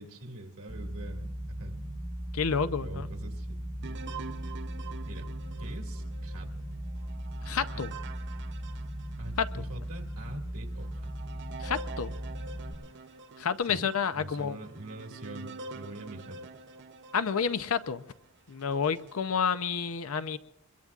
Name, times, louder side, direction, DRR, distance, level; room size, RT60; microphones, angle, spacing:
voice 1, 0.0-1.8 2.8-4.0 5.1-5.3 5.6-6.5 7.7-7.8 9.2-11.1 13.7-13.9 14.1-16.4, right 1 dB, 75° right, 3 dB, 2.2 m, -44 dB
sound 1, 0.7-12.7, equal, 25° right, 6.3 m, -38 dB
voice 2, 2.3-3.1 7.5-7.9 9.4-9.7 11.6-12.2 13.4-14.6 17.1-18.0 18.5-20.4, left 6 dB, 70° left, 13 dB, 0.6 m, -29 dB
sound 2, 3.8-9.6 10.1-10.2 10.8-18.0 18.6-19.2, right 4 dB, 55° right, 0.7 m, -46 dB
25.0 x 22.0 x 2.4 m, 0.83 s
head